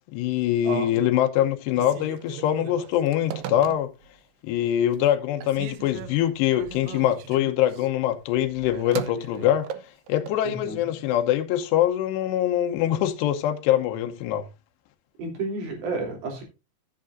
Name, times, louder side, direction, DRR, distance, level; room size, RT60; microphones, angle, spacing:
voice 1, 0.1-3.9 4.4-9.7 10.1-14.5, left 11 dB, 80° left, 3.0 m, -23 dB
voice 2, 0.6-1.0 10.4-10.8 15.2-16.4, right 3 dB, 60° right, 4.7 m, -31 dB
Telephone, 1.7-4.2 4.6-5.1 5.4-10.4, right 11 dB, 80° right, 2.1 m, -39 dB
15.5 x 7.6 x 2.6 m
omnidirectional pair, 4.9 m